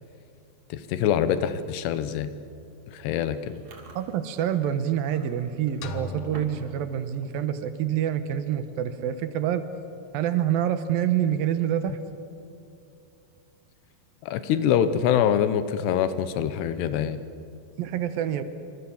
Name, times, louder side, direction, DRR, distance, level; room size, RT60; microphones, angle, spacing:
voice 1, 0.7-2.3 2.9-3.6 14.2-17.2, left 9 dB, 80° left, 11 dB, 3.1 m, -24 dB
Chewing mastication, 3.5-6.7 7.0-7.3 7.8-8.0 8.7-8.8 9.1-9.4 9.8-9.9 11.4-11.9, right 4 dB, 45° right, 3.7 m, -52 dB
voice 2, 4.0-9.6 10.1-12.0 17.8-18.4, right 10 dB, 70° right, 10 dB, 2.6 m, -26 dB
sound 1, 5.8-7.8, left 4 dB, 65° left, 1.7 m, -40 dB
28.0 x 25.5 x 7.2 m, 2.6 s
omnidirectional pair, 4.8 m